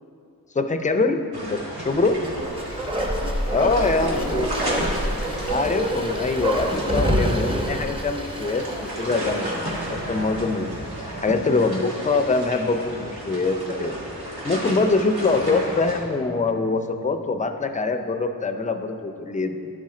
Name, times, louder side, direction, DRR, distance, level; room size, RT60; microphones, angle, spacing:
voice 1, 0.5-2.2 3.5-4.2 5.5-10.7 11.2-14.0 14.4-19.7, left 3 dB, 20° left, 6 dB, 0.5 m, -24 dB
sound 1, 1.3-16.0, equal, 85° right, 1.6 m, -33 dB
Bark, 2.2-9.8 10.1-10.2, equal, 15° right, 0.8 m, -27 dB
voice 2, 2.2-2.6 3.1-4.8, right 1 dB, 55° right, -1 dB, 0.8 m, -37 dB
11.5 x 4.2 x 3.7 m, 2.6 s
wide cardioid pair, 70°, 37 cm